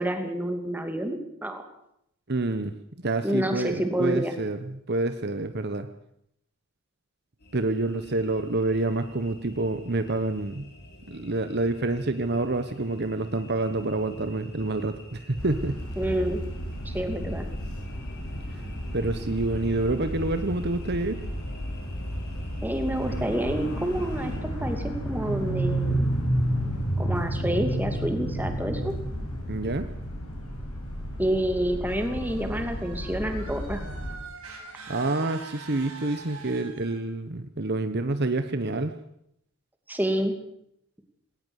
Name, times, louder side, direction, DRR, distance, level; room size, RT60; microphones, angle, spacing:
voice 1, 0.0-1.6 3.2-4.3 16.0-16.4 16.8-17.5 22.6-26.1 27.0-28.9 31.2-33.8 39.9-40.4, right 1 dB, 10° right, 6 dB, 2.6 m, -28 dB
voice 2, 2.3-2.7 3.0-5.9 7.5-10.7 11.1-15.8 18.9-21.2 29.5-29.9 34.9-38.9, right 2 dB, 50° right, 9 dB, 1.1 m, -28 dB
sound 1, 7.4-24.4, equal, 45° left, 6.1 m, -46 dB
sound 2, 15.4-34.2, equal, 85° left, 7.0 m, -31 dB
sound 3, 31.9-37.0, right 4 dB, 80° right, 7.1 m, -44 dB
19.5 x 18.5 x 8.2 m, 0.75 s
head